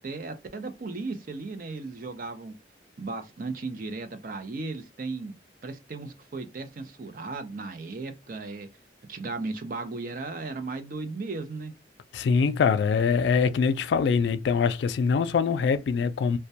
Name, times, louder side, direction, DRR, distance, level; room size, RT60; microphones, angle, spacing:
voice 1, 0.0-2.5 3.0-5.3 5.6-8.7 9.1-11.7, right 3 dB, 50° right, 0.5 m, -36 dB
voice 2, 12.1-16.4, left 5 dB, 80° left, 0.3 m, -23 dB
2.2 x 2.1 x 2.7 m
head